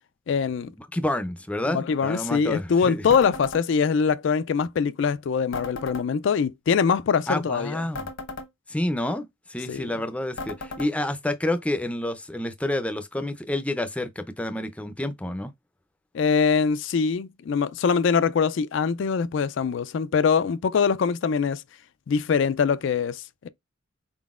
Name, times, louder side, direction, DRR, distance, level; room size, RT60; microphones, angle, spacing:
voice 1, 0.3-0.7 1.7-7.8 9.7-9.9 16.1-21.6 22.1-23.5, left 6 dB, 65° left, 0.3 m, -23 dB
voice 2, 0.8-3.1 7.3-8.1 8.7-15.5, left 1 dB, 5° left, 0.5 m, -29 dB
sound 1, 3.1-3.6 5.5-6.1 7.9-8.5 10.4-10.9, left 3 dB, 80° left, 1.1 m, -35 dB
4.3 x 3.9 x 2.4 m
head